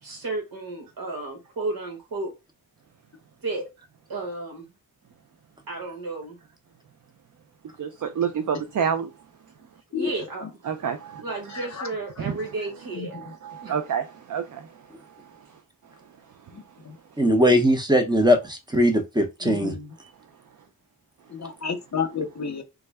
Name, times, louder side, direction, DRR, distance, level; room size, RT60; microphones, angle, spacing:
voice 1, 0.0-2.3 3.4-3.7 4.1-4.7 5.7-6.4 9.9-10.6 11.2-13.2 13.6-13.7, right 2 dB, 80° right, 1.5 m, -33 dB
voice 2, 7.8-9.1 10.6-11.2 12.2-12.4 13.1-15.5 20.0-20.1, right 7 dB, 55° right, 0.5 m, -29 dB
voice 3, 16.5-17.0 19.4-19.9 21.3-22.6, left 6 dB, 50° left, 0.7 m, -31 dB
voice 4, 17.2-19.7, equal, 10° right, 0.7 m, -20 dB
3.4 x 2.1 x 3.4 m
wide cardioid pair, 80°, 35 cm